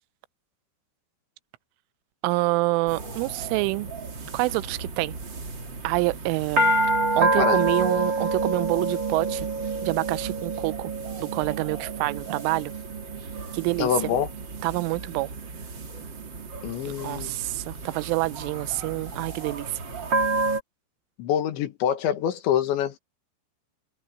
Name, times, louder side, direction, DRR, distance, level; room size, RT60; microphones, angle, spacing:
voice 1, 2.2-3.9 4.3-5.2 5.8-6.7 7.1-9.5 9.8-10.9 11.2-12.7 13.5-13.9 14.6-15.3 16.8-19.8, right 22 dB, 85° right, 3.2 m, -27 dB
sound 1, 2.9-20.6, right 2 dB, 30° right, 2.2 m, -29 dB
voice 2, 13.8-14.3 16.6-17.3 21.2-23.0, left 9 dB, 70° left, 3.9 m, -25 dB
omnidirectional pair, 5.6 m